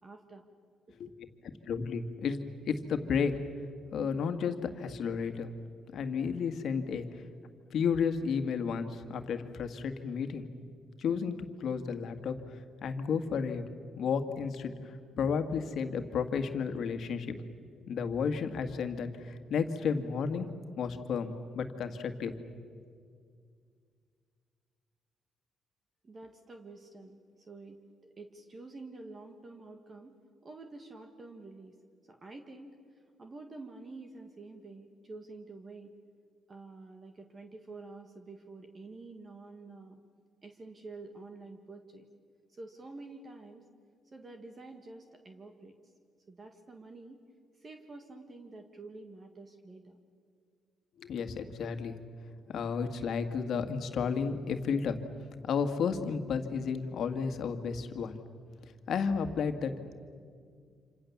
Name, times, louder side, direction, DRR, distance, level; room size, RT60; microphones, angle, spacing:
voice 1, 0.0-0.4 26.0-27.8 28.2-31.8 32.1-32.8 33.2-35.9 36.5-40.0 40.4-42.1 42.5-43.6 44.1-45.8 46.3-47.2 47.6-50.0, right 3 dB, 30° right, 5 dB, 1.9 m, -48 dB
voice 2, 1.7-2.4 2.7-3.4 3.9-5.5 5.9-7.2 7.7-10.4 11.0-12.4 12.8-13.6 14.0-17.4 17.9-22.3 51.0-52.0 52.5-55.0 55.5-58.2 58.9-59.7, left 6 dB, 65° left, 7 dB, 1.9 m, -32 dB
27.0 x 27.0 x 7.3 m, 2.2 s
cardioid pair, 115°, 0 cm